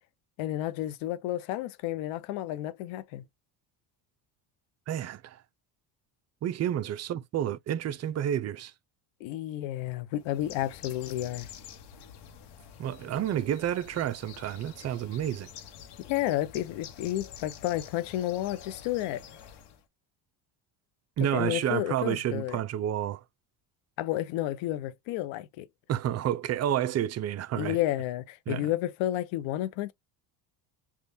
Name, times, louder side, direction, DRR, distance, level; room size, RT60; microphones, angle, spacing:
voice 1, 0.4-3.2 9.2-11.5 16.1-19.2 21.2-22.6 24.0-25.7 27.6-29.9, left 14 dB, 75° left, 0.7 m, -31 dB
voice 2, 4.9-5.4 6.4-8.7 12.8-15.5 21.2-23.2 25.9-27.8 28.5-28.7, right 11 dB, 35° right, 0.4 m, -30 dB
Bird, 10.2-19.8, left 8 dB, 60° left, 1.0 m, -48 dB
3.5 x 2.4 x 2.6 m
supercardioid pair, 90°, 46 cm